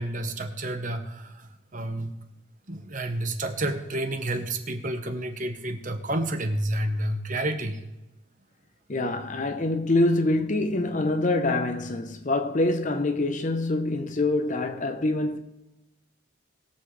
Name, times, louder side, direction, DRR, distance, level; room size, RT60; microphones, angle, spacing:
voice 1, 0.0-2.1 2.7-7.8, right 1 dB, 40° right, 1.1 m, -30 dB
voice 2, 8.9-15.4, left 2 dB, 35° left, 0.8 m, -25 dB
21.0 x 7.3 x 3.3 m
head